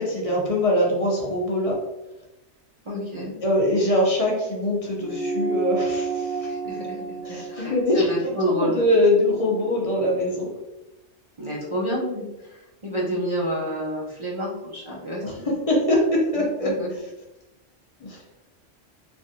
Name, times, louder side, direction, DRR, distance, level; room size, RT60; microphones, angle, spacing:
voice 1, 0.0-1.8 3.4-6.5 7.2-10.5 15.2-16.7 18.0-18.2, left 1 dB, 35° left, -2 dB, 0.6 m, -23 dB
voice 2, 2.9-3.3 6.4-8.8 11.4-15.5 16.6-16.9, equal, 40° right, -4 dB, 0.4 m, -29 dB
sound 1, 5.0-9.8, right 4 dB, 80° right, 0.9 m, -31 dB
3.3 x 2.4 x 2.6 m, 0.97 s
omnidirectional pair, 1.2 m